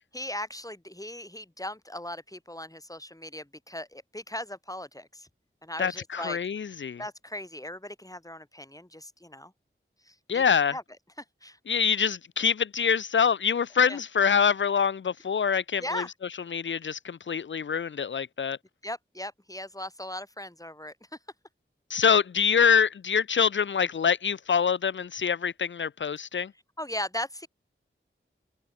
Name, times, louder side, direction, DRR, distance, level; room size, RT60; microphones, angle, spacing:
voice 1, 0.1-5.3 5.6-6.4 7.0-9.5 10.0-10.8 11.2-11.6 13.9-14.0 15.8-16.1 18.8-20.9 26.8-27.5, left 1 dB, 15° left, 6.0 m, -38 dB
voice 2, 5.8-7.0 10.3-10.7 11.7-16.0 16.5-18.6 21.9-26.5, left 7 dB, 65° left, 0.5 m, -25 dB
wide cardioid pair, 60°, 21 cm